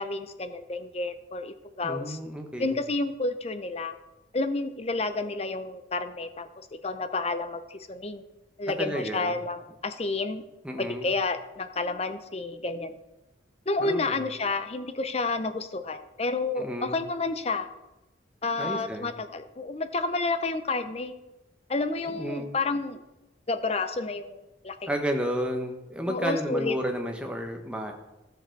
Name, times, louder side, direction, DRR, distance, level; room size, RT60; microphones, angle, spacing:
voice 1, 0.0-2.2 2.6-3.9 4.3-8.2 8.6-10.4 10.8-13.0 13.7-17.7 18.4-21.1 21.7-23.0 23.5-24.9 26.1-26.8, left 3 dB, 30° left, 10 dB, 0.6 m, -30 dB
voice 2, 1.8-2.8 8.8-9.4 10.6-11.1 13.8-14.2 16.6-17.0 18.6-19.1 22.1-22.5 24.9-27.9, equal, 5° right, 3 dB, 1.1 m, -32 dB
13.5 x 6.8 x 4.6 m, 0.98 s
head